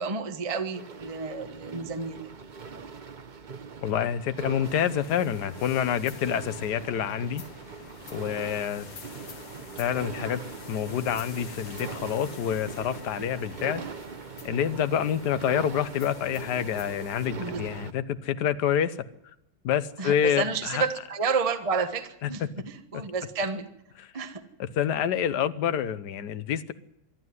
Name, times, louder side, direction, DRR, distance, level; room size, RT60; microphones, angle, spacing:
voice 1, 0.0-2.2 17.4-17.6 20.0-23.7 24.1-24.4, right 5 dB, 20° right, 7 dB, 1.1 m, -30 dB
sound 1, 0.7-17.9, right 5 dB, 85° right, 0.4 m, -41 dB
voice 2, 3.8-7.4 8.1-8.9 9.8-10.4 10.7-13.8 14.4-19.1 19.6-20.8 24.0-24.1 24.6-26.7, left 9 dB, 60° left, 13 dB, 1.3 m, -27 dB
sound 2, 4.6-17.3, left 5 dB, 80° left, 2.7 m, -47 dB
25.5 x 11.5 x 9.6 m, 0.83 s
omnidirectional pair, 2.4 m